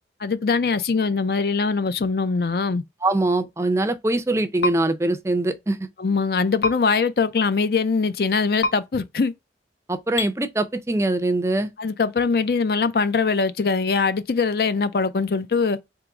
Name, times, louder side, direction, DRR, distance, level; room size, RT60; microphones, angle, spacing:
voice 1, 0.2-2.8 6.0-9.3 11.8-15.8, left 4 dB, 60° left, 0.5 m, -22 dB
voice 2, 3.0-5.9 9.9-11.7, right 2 dB, 15° right, 0.4 m, -23 dB
sound 1, 4.6-4.8 6.6-6.7 8.6-8.7 10.2-10.3, left 3 dB, 75° left, 0.9 m, -23 dB
3.8 x 2.9 x 4.7 m
head